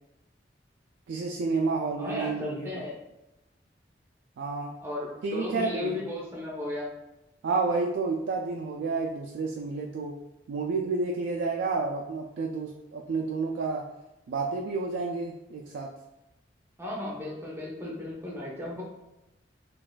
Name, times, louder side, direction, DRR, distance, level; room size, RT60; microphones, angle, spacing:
voice 1, 1.1-2.7 4.4-4.7 5.2-6.0 7.4-10.1 10.5-13.9 14.3-15.9, right 4 dB, 80° right, 0 dB, 0.3 m, -30 dB
voice 2, 2.0-3.0 4.8-6.9 16.8-18.8, left 2 dB, 15° right, -4 dB, 0.5 m, -35 dB
3.9 x 2.3 x 2.2 m, 0.95 s
head